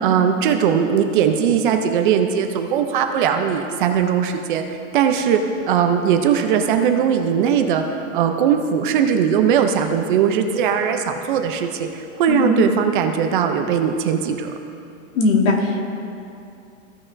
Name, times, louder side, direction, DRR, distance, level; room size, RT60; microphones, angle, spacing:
voice 1, 0.0-5.4 5.7-14.5, right 8 dB, 40° right, 5 dB, 0.6 m, -19 dB
voice 2, 15.1-15.8, left 3 dB, 80° left, -1 dB, 1.9 m, -18 dB
15.5 x 6.0 x 2.6 m, 2.6 s
supercardioid pair, 170°, 40 cm